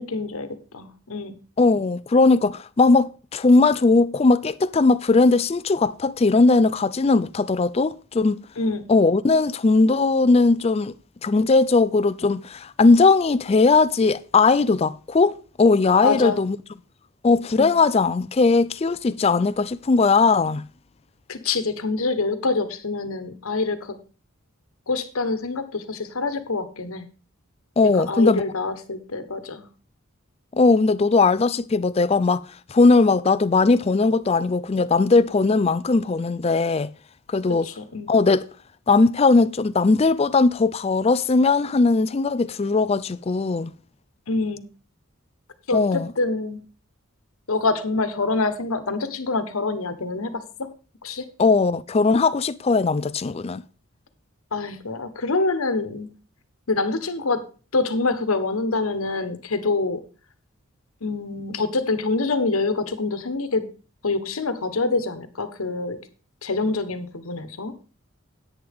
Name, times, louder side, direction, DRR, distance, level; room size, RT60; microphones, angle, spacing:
voice 1, 0.0-1.4 8.6-8.8 16.0-16.4 17.6-17.7 21.3-24.0 24.9-27.1 27.8-29.7 37.6-38.1 44.3-44.6 45.7-46.6 47.5-50.4 51.0-51.3 54.5-56.1 56.7-57.4 57.7-60.0 61.0-63.7 64.0-66.0 66.4-67.7, left 3 dB, 80° left, 1.2 m, -26 dB
voice 2, 1.6-8.4 8.9-10.9 11.2-16.6 17.2-20.6 27.8-28.4 30.5-32.4 32.7-36.9 37.3-37.7 38.1-38.5 38.9-43.7 45.7-46.1 51.4-53.6, left 3 dB, 30° left, 0.4 m, -19 dB
10.5 x 9.3 x 3.5 m
head